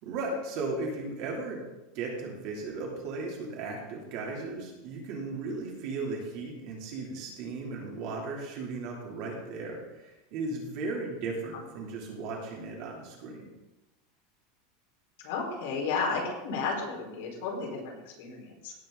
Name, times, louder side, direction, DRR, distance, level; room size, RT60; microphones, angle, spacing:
voice 1, 0.0-1.7 1.9-13.5, right 3 dB, 45° right, -1 dB, 3.0 m, -36 dB
voice 2, 15.2-18.7, left 4 dB, 65° left, -2 dB, 4.3 m, -33 dB
17.0 x 7.9 x 3.9 m, 1.0 s
supercardioid pair, 175°, 0 cm